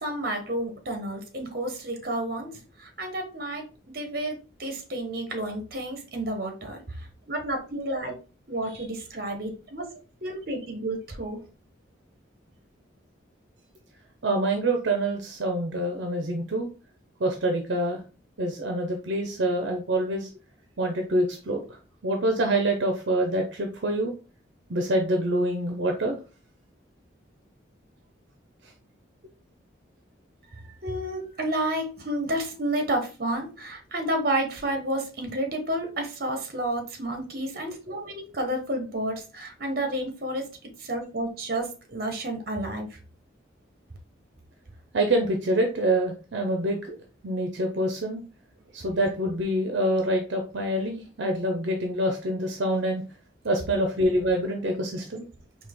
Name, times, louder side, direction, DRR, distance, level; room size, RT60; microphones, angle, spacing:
voice 1, 0.0-2.5 2.8-3.6 3.9-7.0 7.3-8.1 8.5-11.4 30.8-40.5 40.8-43.0, right 1 dB, 50° right, 4 dB, 1.1 m, -30 dB
voice 2, 14.2-16.7 17.2-18.0 18.4-20.3 20.8-21.6 22.0-24.1 24.7-26.2 44.9-47.0 47.2-48.2 48.7-53.0 53.4-55.3, right 1 dB, 75° right, 3 dB, 0.7 m, -26 dB
4.3 x 2.8 x 3.6 m, 0.34 s
head